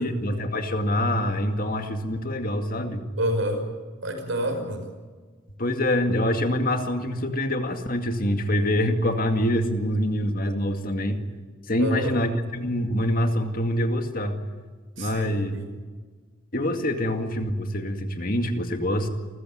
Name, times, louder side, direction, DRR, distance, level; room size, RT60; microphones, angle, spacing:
voice 1, 0.0-3.0 5.6-11.2 11.7-14.4 15.0-15.6 16.5-19.1, left 1 dB, 45° left, 6 dB, 2.2 m, -25 dB
voice 2, 3.2-3.6 4.0-4.8 11.8-12.2 15.0-15.7, equal, 80° right, 5 dB, 5.6 m, -28 dB
28.5 x 15.0 x 9.5 m, 1.5 s
head